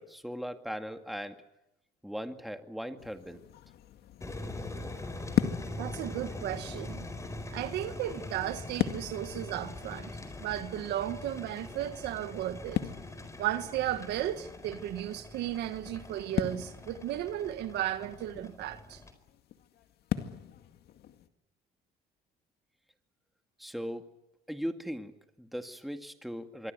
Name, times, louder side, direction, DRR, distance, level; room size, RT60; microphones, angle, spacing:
voice 1, 0.0-1.4 2.0-3.4 23.6-24.1 24.5-26.7, equal, ahead, 2.2 m, -38 dB
sound 1, 3.0-21.3, left 11 dB, 70° left, 2.1 m, -40 dB
sound 2, 4.2-19.1, left 2 dB, 20° left, 4.5 m, -43 dB
voice 2, 5.8-7.1 7.5-10.1 10.4-12.9 13.4-19.0, right 12 dB, 80° right, 1.7 m, -34 dB
26.0 x 24.0 x 8.2 m
cardioid pair, 110°, 17 cm